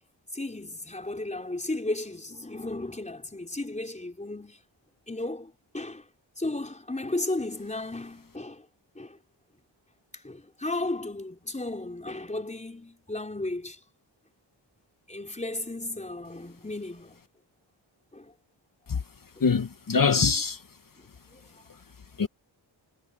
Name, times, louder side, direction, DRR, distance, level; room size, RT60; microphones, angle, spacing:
voice 1, 0.3-4.6 5.1-6.1 6.4-8.7 8.9-9.2 10.1-13.8 15.1-17.2 18.1-18.3 19.4-19.5 20.3-20.4 21.3-21.6, left 2 dB, 15° left, 4.2 m, -34 dB
voice 2, 19.4-20.6 22.2-22.3, left 5 dB, 45° left, 1.0 m, -23 dB
wide cardioid pair, 105°, 46 cm